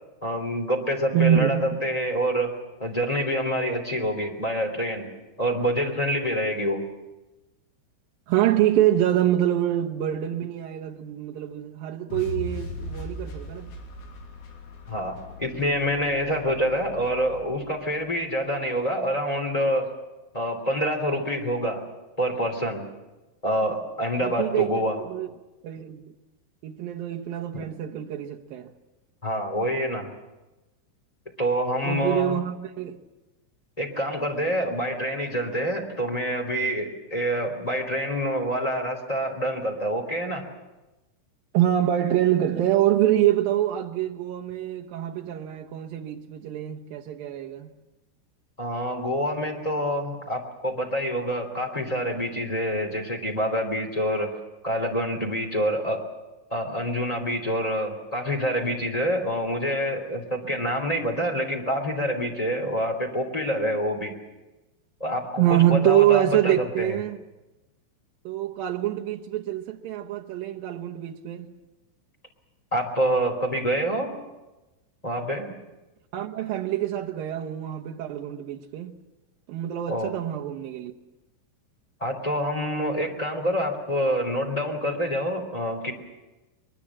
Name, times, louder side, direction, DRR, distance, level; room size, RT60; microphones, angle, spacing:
voice 1, 0.2-2.5 2.8-5.1 5.4-6.8 14.9-19.9 20.3-21.8 22.2-22.8 23.4-25.0 27.5-27.6 29.2-30.1 31.4-32.4 33.8-40.4 48.6-54.3 54.6-56.0 56.5-64.1 65.0-67.0 72.7-74.2 75.0-75.5 79.9-80.1 82.0-85.9, equal, 10° left, 2.0 m, -26 dB
voice 2, 1.1-1.8 8.3-13.7 24.2-24.7 25.0-25.3 25.6-26.1 26.6-28.7 31.9-33.0 41.5-47.7 65.4-67.2 68.3-71.5 76.1-79.0 79.5-80.9, right 12 dB, 80° right, 2.0 m, -25 dB
sound 1, 12.1-18.3, left 1 dB, 60° left, 5.0 m, -39 dB
23.0 x 23.0 x 7.4 m
omnidirectional pair, 5.7 m